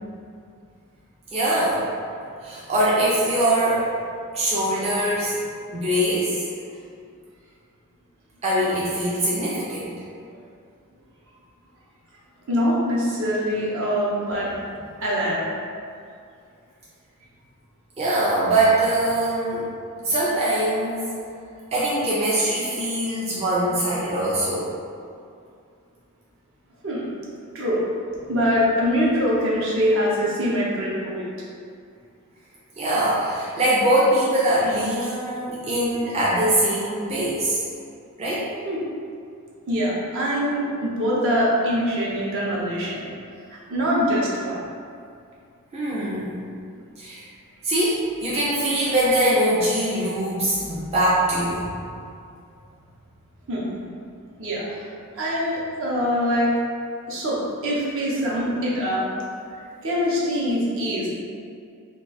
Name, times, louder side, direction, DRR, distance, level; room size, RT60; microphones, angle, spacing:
voice 1, 1.3-1.8 2.4-3.8 4.3-6.5 8.4-10.0 18.0-19.7 20.0-21.0 21.7-24.7 32.8-37.6 38.2-38.5 45.7-46.5 47.0-47.3 47.6-51.7, right 1 dB, 30° right, -8 dB, 0.4 m, -22 dB
voice 2, 12.5-14.5 15.0-15.4 26.8-27.1 27.5-27.8 28.3-31.3 38.7-38.8 39.7-43.1 43.5-44.6 53.5-53.8 54.4-54.8 55.2-56.5 57.1-59.0 59.8-61.1, equal, 65° right, -6 dB, 0.7 m, -23 dB
2.3 x 2.3 x 3.9 m, 2.3 s
head